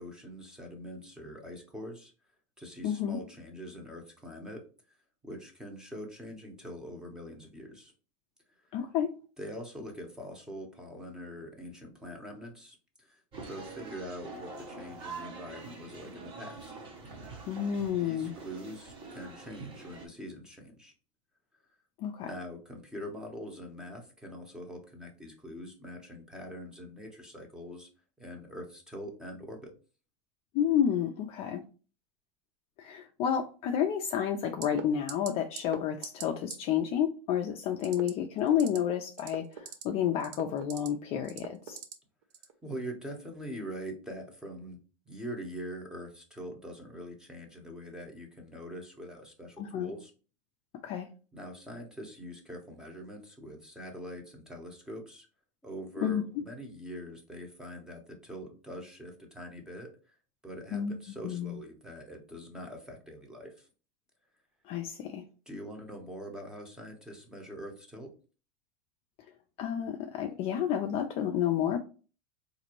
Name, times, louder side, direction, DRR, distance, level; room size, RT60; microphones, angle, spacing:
voice 1, 0.0-2.1 2.6-4.6 5.2-7.9 9.4-16.7 18.0-20.9 22.2-27.9 28.2-29.7 42.6-44.8 45.1-50.1 51.3-55.3 55.6-60.1 60.4-63.7 65.5-68.1, equal, 5° right, 0.8 m, -43 dB
voice 2, 2.8-3.2 8.7-9.1 17.5-18.3 22.0-22.3 30.5-31.6 32.8-41.8 49.6-49.9 50.8-51.1 56.0-56.2 60.7-60.9 61.2-61.6 64.6-65.2 69.6-71.8, left 9 dB, 30° left, 0.4 m, -30 dB
sound 1, 13.3-20.1, right 3 dB, 25° right, 0.9 m, -45 dB
sound 2, 34.6-34.8 35.1-35.3 35.6-35.8 36.0-36.2 36.5-36.6 37.8-38.1 38.5-38.8 39.1-39.8 40.2-40.9 41.3-41.9 42.3-42.5, right 8 dB, 55° right, 0.7 m, -39 dB
4.0 x 2.6 x 2.9 m
supercardioid pair, 145°, 18 cm